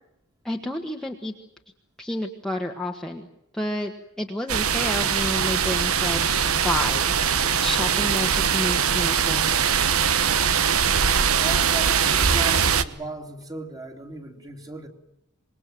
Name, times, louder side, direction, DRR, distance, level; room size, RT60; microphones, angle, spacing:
voice 1, 0.4-1.3 2.0-3.3 3.5-6.3 6.6-9.7, left 1 dB, 5° left, 1 dB, 1.5 m, -30 dB
sound 1, 4.5-12.8, right 7 dB, 75° right, 1.2 m, -22 dB
sound 2, 5.6-5.8 6.4-6.6 7.1-7.4 7.9-8.2 8.7-9.0 9.5-9.7 10.3-10.5 11.1-11.3 11.8-12.1 12.6-12.9 13.4-13.5, left 2 dB, 30° left, 1.9 m, -46 dB
voice 2, 11.4-14.9, right 2 dB, 15° right, 4 dB, 2.8 m, -36 dB
26.5 x 21.5 x 7.7 m, 0.81 s
head